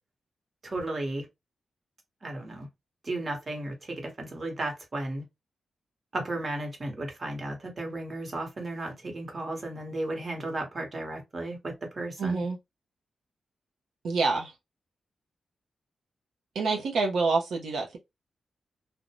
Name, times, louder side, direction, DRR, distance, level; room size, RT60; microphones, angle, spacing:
voice 1, 0.6-1.3 2.2-2.7 3.0-5.2 6.1-12.4, right 2 dB, 40° right, 1.0 m, -34 dB
voice 2, 12.2-12.6 14.0-14.5 16.5-18.0, right 4 dB, 80° right, 0.5 m, -27 dB
2.5 x 2.1 x 2.8 m
cardioid pair, 85°, 0 cm